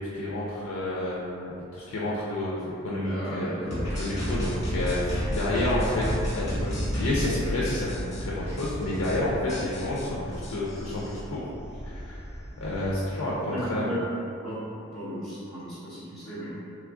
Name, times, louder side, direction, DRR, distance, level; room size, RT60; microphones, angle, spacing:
voice 1, 0.1-6.1 6.3-11.5 11.8-12.3 12.6-13.9, left 1 dB, 65° left, -6 dB, 0.4 m, -30 dB
voice 2, 3.0-3.8 13.5-14.0 14.4-14.7 14.9-16.5, equal, ahead, -13 dB, 0.9 m, -35 dB
sound 1, 3.7-7.3 7.6-8.2 8.6-8.7 8.9-9.2 9.5-11.2, equal, 30° left, 1.0 m, -32 dB
sound 2, 4.3-12.9, equal, 20° right, 0.6 m, -36 dB
3.0 x 2.3 x 3.5 m, 2.6 s
head